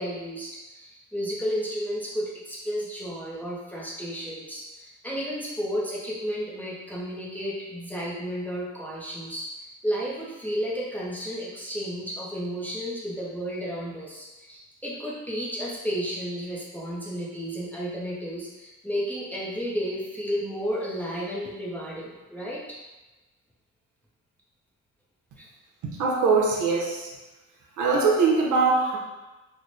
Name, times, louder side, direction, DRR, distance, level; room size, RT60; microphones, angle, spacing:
voice 1, 0.0-22.6 25.4-25.5, equal, 5° left, -6 dB, 0.6 m, -32 dB
voice 2, 25.8-27.1 27.8-29.0, right 4 dB, 75° right, -2 dB, 0.8 m, -22 dB
3.2 x 2.1 x 3.9 m, 1.1 s
cardioid pair, 145°, 30 cm